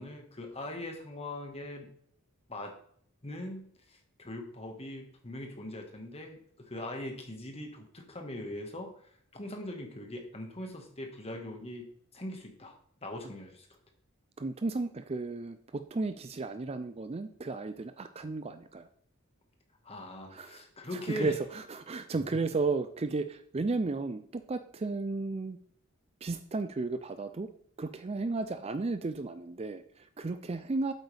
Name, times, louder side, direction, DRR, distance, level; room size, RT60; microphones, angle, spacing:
voice 1, 0.0-1.9 2.5-2.7 3.2-9.0 9.3-12.7 13.0-13.7 19.8-21.3, left 1 dB, 30° left, 3 dB, 1.6 m, -41 dB
voice 2, 14.4-18.9 20.3-25.6 26.2-27.5 27.8-30.9, right 3 dB, 30° right, 10 dB, 0.4 m, -34 dB
8.2 x 8.2 x 3.4 m, 0.62 s
head